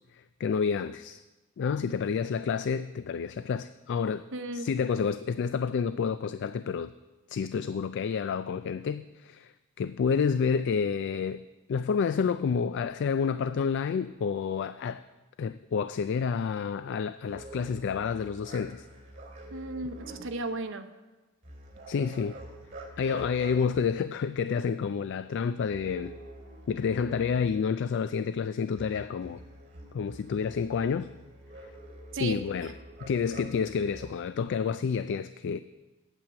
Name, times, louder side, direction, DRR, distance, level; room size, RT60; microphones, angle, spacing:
voice 1, 0.1-1.2 1.6-4.3 4.5-6.9 7.3-11.4 11.7-15.0 15.4-18.9 21.9-22.3 23.0-26.1 26.7-29.4 29.9-31.1 32.2-32.7 33.0-35.6, left 6 dB, 55° left, 13 dB, 0.3 m, -29 dB
voice 2, 4.3-4.7 19.5-20.9 32.1-32.4, right 2 dB, 60° right, 8 dB, 0.8 m, -34 dB
sound 1, 17.2-20.3 21.4-24.0 25.6-27.5 28.8-34.1, right 1 dB, 35° right, 2.9 m, -47 dB
9.1 x 8.7 x 7.4 m, 1.2 s
head